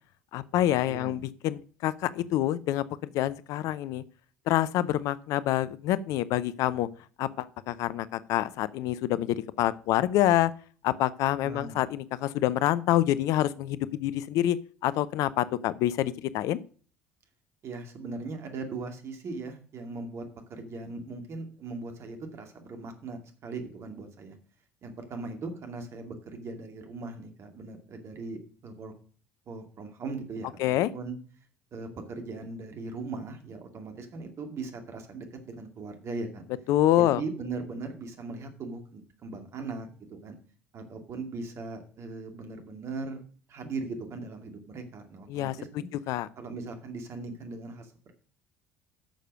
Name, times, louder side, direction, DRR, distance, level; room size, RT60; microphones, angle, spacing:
voice 1, 0.3-2.8 3.1-4.0 4.5-6.9 7.2-10.5 10.8-14.6 14.8-16.6 30.6-30.9 36.7-37.2 45.3-45.6 46.1-46.3, left 13 dB, 55° left, 17 dB, 0.6 m, -26 dB
voice 2, 0.9-1.2 11.4-11.8 17.6-20.2 20.5-24.4 24.8-28.9 29.5-31.2 31.7-36.4 37.0-40.4 40.7-43.2 43.5-45.9 46.4-48.1, right 3 dB, 45° right, 5 dB, 2.4 m, -39 dB
9.1 x 6.7 x 6.3 m, 0.42 s
figure-of-eight pair, 60°, 7 cm